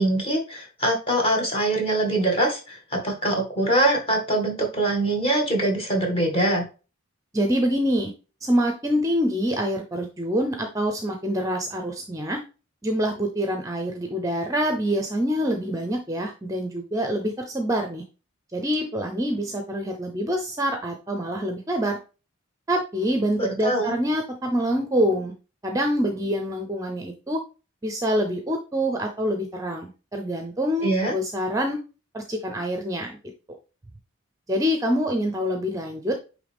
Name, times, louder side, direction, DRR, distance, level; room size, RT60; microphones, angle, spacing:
voice 1, 0.0-6.7 23.4-23.9 30.8-31.1, right 1 dB, 25° left, 0 dB, 1.8 m, -23 dB
voice 2, 7.3-8.1 8.4-12.4 12.8-18.0 18.5-22.0 22.7-25.3 25.6-27.4 27.8-31.8 32.1-33.2 34.5-36.2, equal, 15° right, 4 dB, 0.6 m, -26 dB
9.1 x 3.2 x 3.5 m, 0.33 s
head